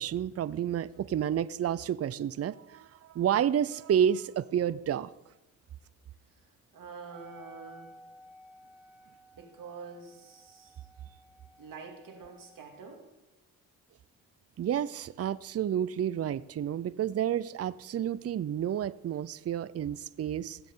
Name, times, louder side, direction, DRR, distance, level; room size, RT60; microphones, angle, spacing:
voice 1, 0.0-5.1 14.6-20.6, right 9 dB, 45° right, 17 dB, 0.5 m, -30 dB
voice 2, 6.7-8.0 9.4-10.8 11.6-13.1, right 5 dB, 65° right, 3 dB, 2.6 m, -46 dB
Wind instrument woodwind instrument, 7.0-12.8, equal, 5° right, 2.3 m, -56 dB
18.5 x 7.6 x 3.8 m, 1.0 s
cardioid pair, 65°, 36 cm